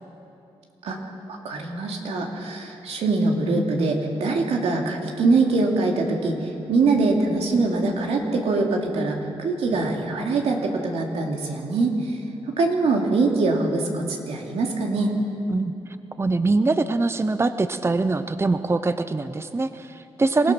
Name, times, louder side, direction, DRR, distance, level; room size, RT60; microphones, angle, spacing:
voice 1, 1.3-12.1 12.6-15.1 20.4-20.5, right 3 dB, 85° right, 1 dB, 2.7 m, -23 dB
voice 2, 16.2-20.5, right 3 dB, 25° right, 11 dB, 0.7 m, -23 dB
27.0 x 16.0 x 6.2 m, 2.9 s
cardioid pair, 80°, 10 cm